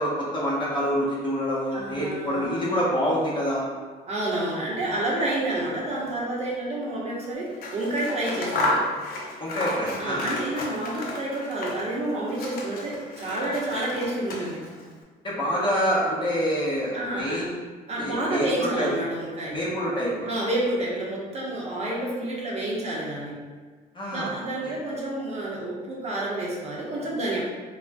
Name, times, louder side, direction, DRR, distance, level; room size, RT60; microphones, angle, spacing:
voice 1, 0.0-3.7 9.4-10.2 15.2-17.5 18.0-18.9 19.5-20.3 23.9-24.7, equal, 30° left, -7 dB, 0.9 m, -26 dB
voice 2, 1.7-2.6 4.1-8.9 10.0-14.6 16.9-17.4 17.9-19.6 20.3-23.4 24.1-27.4, right 1 dB, 40° right, -4 dB, 0.7 m, -29 dB
Scissors, 7.5-12.0 12.3-14.8, left 1 dB, 60° left, 0.5 m, -32 dB
2.4 x 2.1 x 3.4 m, 1.5 s
cardioid pair, 110°, 17 cm